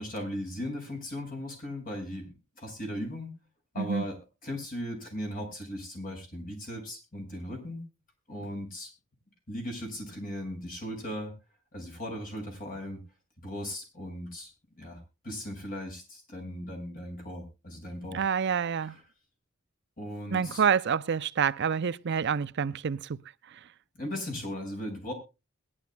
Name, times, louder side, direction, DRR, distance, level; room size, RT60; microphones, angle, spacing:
voice 1, 0.0-3.3 3.7-7.8 8.3-8.9 9.5-11.3 11.7-13.0 13.4-19.0 20.0-20.6 24.0-25.1, equal, 45° left, 6.1 m, -38 dB
voice 2, 18.1-18.9 20.3-23.0, right 7 dB, 55° right, 0.5 m, -27 dB
21.5 x 11.0 x 2.2 m
head